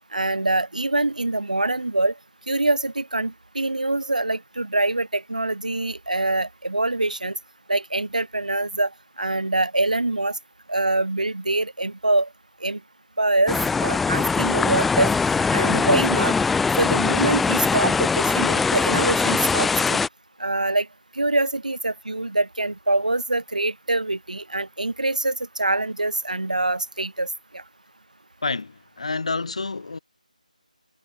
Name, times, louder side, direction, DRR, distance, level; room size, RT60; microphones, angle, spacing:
voice 1, 0.1-2.1 2.5-7.4 7.7-8.9 9.2-10.4 10.7-12.3 12.6-12.8 13.2-15.1 15.5-16.3 16.8-20.0 20.4-20.9 21.2-27.3 27.5-27.6, right 2 dB, 65° right, 4.9 m, -24 dB
sound 1, 13.5-20.1, left 4 dB, ahead, 0.5 m, -21 dB
voice 2, 28.4-30.0, left 3 dB, 50° left, 4.7 m, -28 dB
figure-of-eight pair, 160°, 4 cm